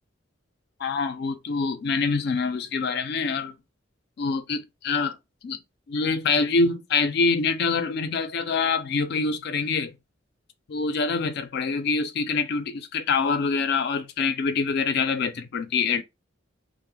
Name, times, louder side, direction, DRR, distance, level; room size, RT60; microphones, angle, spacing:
voice 1, 0.8-3.5 4.2-5.2 5.4-5.6 5.9-9.9 10.7-16.0, left 4 dB, 55° left, 0.4 m, -25 dB
2.2 x 2.0 x 3.1 m
head